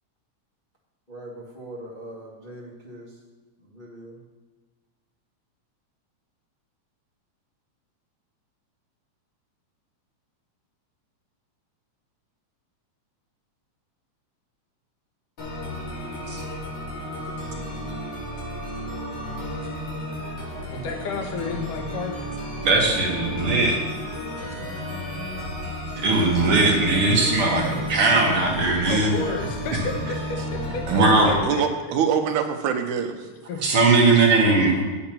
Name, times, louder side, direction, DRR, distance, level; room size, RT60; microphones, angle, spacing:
voice 1, 1.1-3.1 3.6-4.2, right 1 dB, 25° left, -6 dB, 1.0 m, -41 dB
sound 1, 15.4-31.4, equal, 70° left, 4.5 m, -33 dB
voice 2, 20.7-22.2 28.9-31.6 33.5-33.6, left 3 dB, 90° left, 3 dB, 2.8 m, -32 dB
voice 3, 22.6-23.8 26.0-29.1 30.9-31.4 33.6-34.8, right 3 dB, 55° right, 0 dB, 1.9 m, -19 dB
voice 4, 30.9-33.3, right 7 dB, 80° right, 6 dB, 2.3 m, -25 dB
8.4 x 8.3 x 6.0 m, 1.3 s
omnidirectional pair, 3.5 m